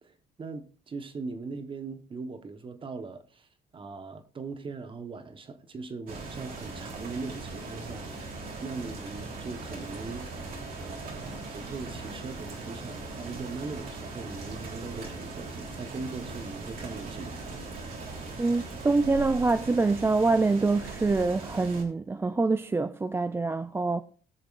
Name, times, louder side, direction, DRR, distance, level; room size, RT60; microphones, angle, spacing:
voice 1, 0.0-10.4 10.8-17.5, right 4 dB, 30° right, 1.2 m, -40 dB
sound 1, 6.1-21.8, right 3 dB, 60° right, 3.3 m, -39 dB
voice 2, 18.4-24.0, right 3 dB, 15° right, 0.4 m, -25 dB
20.0 x 6.7 x 2.5 m
cardioid pair, 110°, 17 cm